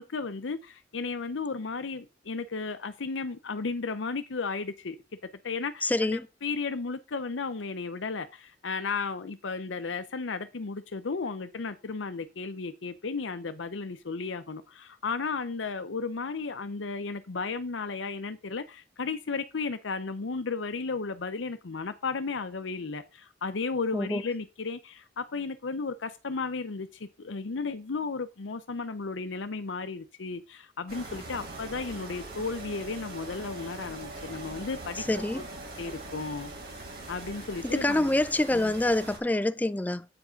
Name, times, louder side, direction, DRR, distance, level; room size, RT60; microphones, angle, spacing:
voice 1, 0.0-5.0 5.4-35.4 35.8-36.5 37.1-38.2 38.5-38.7, left 4 dB, 70° left, 0.7 m, -34 dB
voice 2, 5.8-6.2 23.9-24.2 35.1-35.4 37.7-40.1, left 1 dB, 10° left, 0.4 m, -26 dB
sound 1, 30.9-39.2, right 2 dB, 55° right, 2.8 m, -42 dB
8.6 x 4.9 x 5.1 m
head